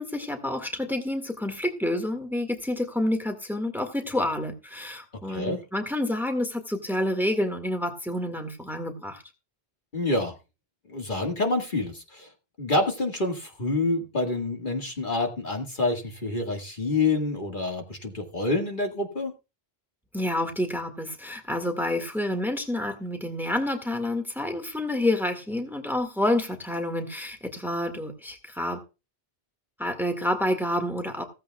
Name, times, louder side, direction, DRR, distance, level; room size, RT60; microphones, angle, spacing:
voice 1, 0.0-9.2 20.1-28.8 29.8-31.2, left 1 dB, ahead, 5 dB, 1.8 m, -28 dB
voice 2, 5.3-5.6 9.9-10.4 10.9-12.3 12.6-19.3, left 2 dB, 50° left, 3 dB, 2.0 m, -27 dB
15.5 x 15.0 x 2.3 m, 0.29 s
omnidirectional pair, 1.1 m